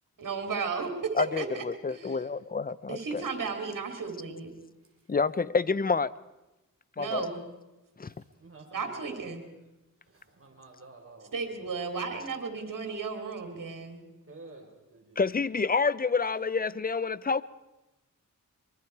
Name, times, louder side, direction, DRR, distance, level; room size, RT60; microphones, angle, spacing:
voice 1, 0.2-2.3 2.9-4.5 7.0-7.4 8.7-9.4 11.3-14.0, right 5 dB, 75° right, 4 dB, 3.4 m, -34 dB
voice 2, 1.2-3.2 5.1-6.1 7.0-7.2 8.0-8.1 15.2-17.4, left 4 dB, 25° left, 18 dB, 0.7 m, -28 dB
voice 3, 8.0-9.3 10.0-11.5 14.3-15.3, right 3 dB, 45° right, 2 dB, 4.3 m, -51 dB
23.5 x 23.0 x 4.8 m, 1.0 s
cardioid pair, 70°, 32 cm